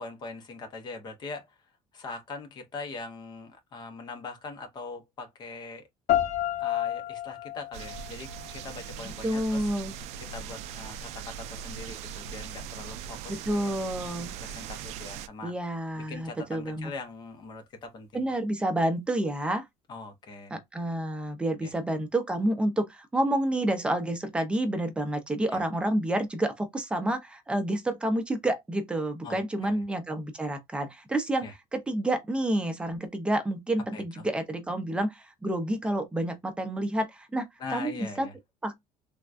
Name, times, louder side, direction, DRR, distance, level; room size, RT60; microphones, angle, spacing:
voice 1, 0.0-1.5 1.9-5.9 6.6-9.7 10.2-13.7 14.4-15.5 16.0-18.3 19.9-20.6 21.6-21.7 25.5-25.6 29.2-29.8 31.4-31.5 33.9-34.0 37.6-38.3, left 3 dB, 35° left, 0.7 m, -42 dB
sound 1, 6.1-9.1, left 13 dB, 60° left, 0.9 m, -30 dB
sound 2, 7.7-15.3, right 8 dB, 65° right, 0.4 m, -40 dB
voice 2, 9.0-9.9 13.3-14.3 15.4-16.9 18.1-19.7 20.5-38.3 38.6-38.8, right 1 dB, 10° right, 0.6 m, -29 dB
3.4 x 2.2 x 2.4 m
cardioid pair, 155°, 12 cm